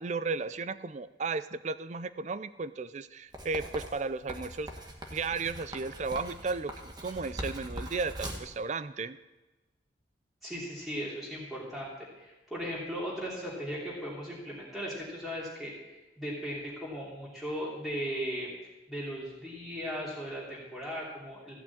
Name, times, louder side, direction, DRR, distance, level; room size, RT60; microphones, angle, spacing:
voice 1, 0.0-4.7 5.1-9.2, right 4 dB, 40° right, 14 dB, 0.5 m, -34 dB
Writing, 3.3-8.5, right 1 dB, 25° right, 1.5 m, -41 dB
voice 2, 10.4-18.5 18.9-21.5, equal, ahead, -7 dB, 2.9 m, -37 dB
15.0 x 6.0 x 8.5 m, 1.1 s
head